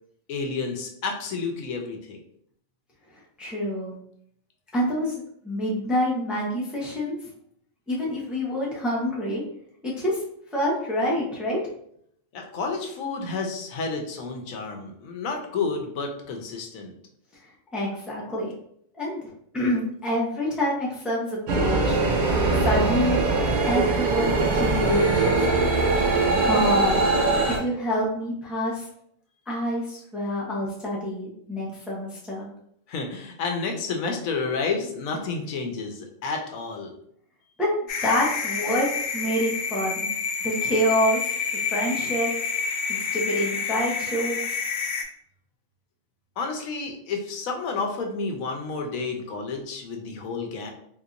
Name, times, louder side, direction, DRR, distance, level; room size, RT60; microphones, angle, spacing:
voice 1, 0.3-2.2 12.3-16.9 32.9-36.9 46.4-50.7, left 4 dB, 90° left, 3 dB, 1.1 m, -30 dB
voice 2, 3.4-4.0 4.7-7.2 7.9-9.4 9.8-10.2 10.5-11.6 17.7-18.5 19.0-21.9 22.5-23.3 23.6-25.4 26.4-27.0 27.5-28.9 29.5-32.5 37.6-37.7 38.0-40.1 40.4-41.3 41.7-42.3 42.9-44.6, equal, ahead, -4 dB, 0.6 m, -27 dB
sound 1, 21.5-27.6, right 3 dB, 60° right, 0.5 m, -22 dB
sound 2, 37.9-45.0, left 5 dB, 60° left, 0.7 m, -28 dB
3.8 x 2.9 x 2.5 m, 0.69 s
omnidirectional pair, 1.4 m